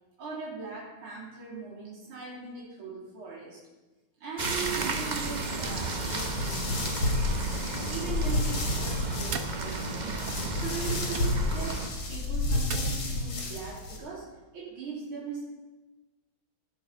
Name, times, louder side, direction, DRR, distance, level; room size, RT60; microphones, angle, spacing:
voice 1, 0.2-3.6 4.2-10.0 10.6-15.4, right 5 dB, 80° right, -6 dB, 3.9 m, -40 dB
sound 1, 4.4-11.9, right 3 dB, 40° right, 0.6 m, -33 dB
sound 2, 5.6-14.0, left 2 dB, 70° left, 2.9 m, -31 dB
sound 3, 8.9-13.7, right 6 dB, 55° right, 1.0 m, -43 dB
17.0 x 6.2 x 5.5 m, 1.1 s
omnidirectional pair, 2.3 m